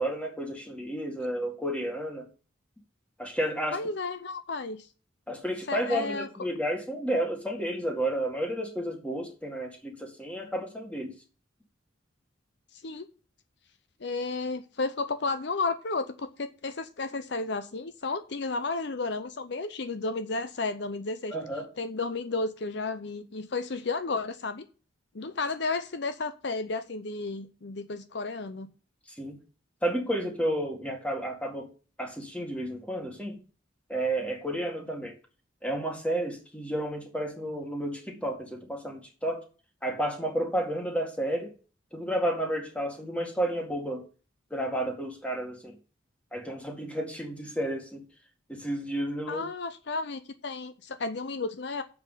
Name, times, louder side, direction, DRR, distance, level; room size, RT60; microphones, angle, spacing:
voice 1, 0.0-2.3 3.2-3.8 5.3-11.1 21.3-21.7 29.1-29.4 29.8-31.7 32.0-33.4 33.9-35.1 35.6-39.4 39.8-41.5 41.9-44.0 44.5-45.8 46.3-48.0 48.5-49.4, right 1 dB, 5° left, 3 dB, 2.0 m, -31 dB
voice 2, 3.7-4.9 5.7-6.3 12.8-13.1 14.0-21.4 21.8-24.7 25.1-28.7 49.3-51.8, left 3 dB, 60° left, 10 dB, 0.7 m, -32 dB
7.4 x 6.0 x 7.4 m, 0.37 s
head